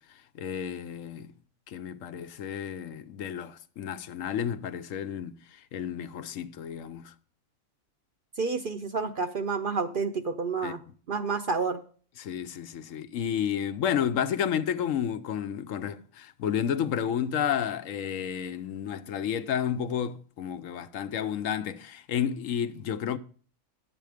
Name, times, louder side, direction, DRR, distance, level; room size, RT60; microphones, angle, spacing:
voice 1, 0.4-1.3 1.7-7.1 10.6-10.7 12.2-23.2, left 8 dB, 75° left, 1.0 m, -31 dB
voice 2, 8.4-10.8 11.1-11.8, right 4 dB, 55° right, 0.6 m, -29 dB
10.5 x 8.1 x 4.9 m
omnidirectional pair, 1.4 m